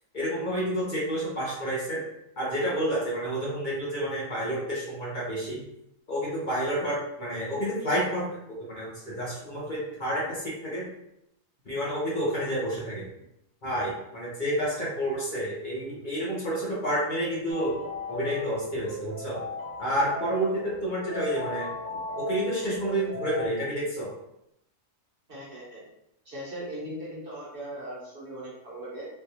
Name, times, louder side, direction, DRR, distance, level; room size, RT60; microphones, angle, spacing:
voice 1, 0.1-2.0 2.4-5.6 6.1-10.9 11.6-13.0 13.6-17.8 18.1-19.4 19.8-21.7 22.2-24.1, right 1 dB, 40° left, -6 dB, 1.0 m, -29 dB
sound 1, 17.5-23.5, left 2 dB, 10° left, 0.9 m, -36 dB
voice 2, 25.3-25.8 26.2-29.1, right 1 dB, 45° right, -6 dB, 1.0 m, -39 dB
3.4 x 2.5 x 2.9 m, 0.80 s
omnidirectional pair, 1.4 m